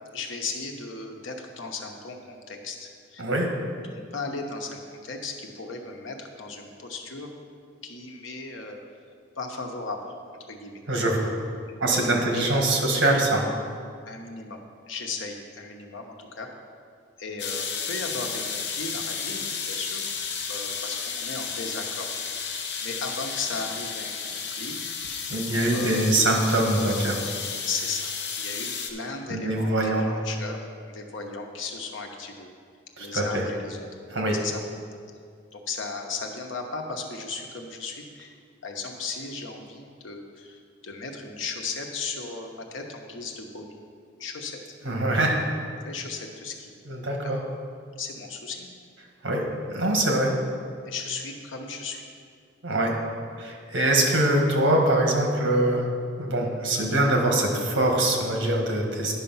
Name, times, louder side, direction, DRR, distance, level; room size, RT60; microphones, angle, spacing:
voice 1, 0.1-3.2 3.9-7.3 7.8-8.8 9.4-10.0 10.5-10.8 11.9-12.1 14.1-14.6 14.9-16.5 17.2-20.0 20.4-22.1 22.8-24.8 25.7-26.1 27.7-28.1 28.4-32.5 33.0-33.8 34.3-34.6 35.5-38.3 38.6-43.8 44.1-44.6 45.8-46.7 48.0-48.7 50.8-52.0, left 4 dB, 90° left, 2 dB, 1.1 m, -36 dB
voice 2, 10.9-11.3 11.8-13.5 25.3-27.2 29.3-30.0 33.0-33.4 34.1-34.3 44.8-45.4 46.9-47.4 49.2-50.3 52.6-52.9 53.4-55.9 56.2-59.1, right 1 dB, 85° right, 1 dB, 1.6 m, -23 dB
sound 1, 17.4-28.9, left 6 dB, 65° left, 0.9 m, -32 dB
9.9 x 5.7 x 5.7 m, 2.1 s
head